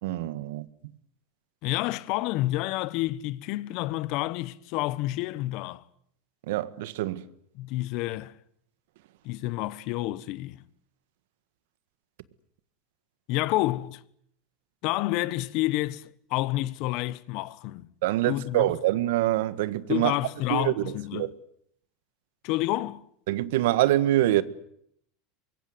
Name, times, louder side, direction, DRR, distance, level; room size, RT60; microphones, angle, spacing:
voice 1, 0.0-0.7 6.5-7.2 18.0-20.2 20.5-21.3 23.3-24.4, right 15 dB, 75° right, 1.5 m, -25 dB
voice 2, 1.6-5.8 7.5-8.3 9.2-10.6 13.3-14.0 14.8-17.9 18.3-18.7 19.9-21.3 22.4-23.1, left 17 dB, 55° left, 1.2 m, -29 dB
24.5 x 22.5 x 9.6 m
supercardioid pair, 140°, 0 cm